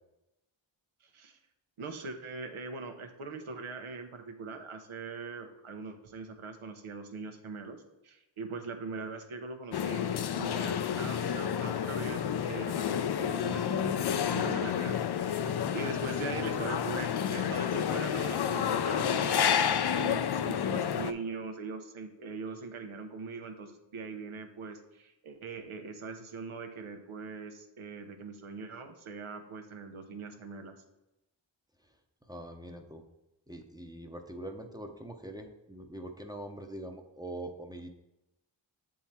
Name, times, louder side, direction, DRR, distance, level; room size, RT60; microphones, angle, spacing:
voice 1, 1.0-1.4 1.8-30.7, right 4 dB, 90° right, 6 dB, 0.8 m, -41 dB
sound 1, 9.7-21.1, left 8 dB, 55° left, 0.5 m, -30 dB
voice 2, 32.3-33.0 33.5-37.9, right 1 dB, 10° right, 4 dB, 0.7 m, -43 dB
6.9 x 3.8 x 4.2 m, 0.94 s
cardioid pair, 40°, 48 cm